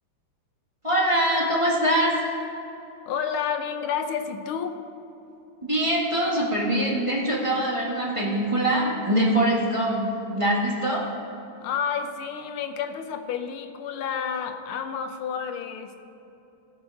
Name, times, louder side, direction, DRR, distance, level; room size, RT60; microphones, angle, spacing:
voice 1, 0.8-2.2 5.6-11.0, right 1 dB, 15° right, -5 dB, 1.7 m, -23 dB
voice 2, 3.1-4.8 11.6-15.9, left 7 dB, 75° left, 7 dB, 1.6 m, -30 dB
17.5 x 6.2 x 4.7 m, 3.0 s
omnidirectional pair, 2.4 m